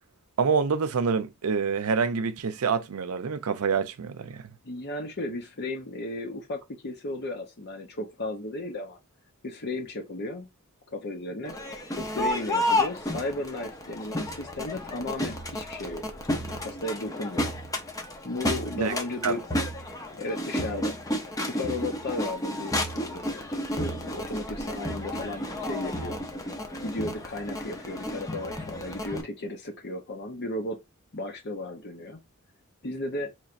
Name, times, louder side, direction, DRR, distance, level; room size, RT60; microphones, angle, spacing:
voice 1, 0.4-4.5 18.8-19.0 19.2-19.3, right 5 dB, 75° right, 0.5 m, -26 dB
voice 2, 4.6-9.0 9.4-10.5 10.9-11.6 12.0-16.0 16.6-17.5 18.2-19.4 20.2-21.0 21.4-23.3 23.8-26.2 26.8-30.8 31.1-32.2 32.8-33.3, left 2 dB, 50° left, 0.7 m, -34 dB
Crowd, 11.4-29.2, left 1 dB, 15° left, 0.7 m, -32 dB
4.4 x 3.1 x 2.5 m
head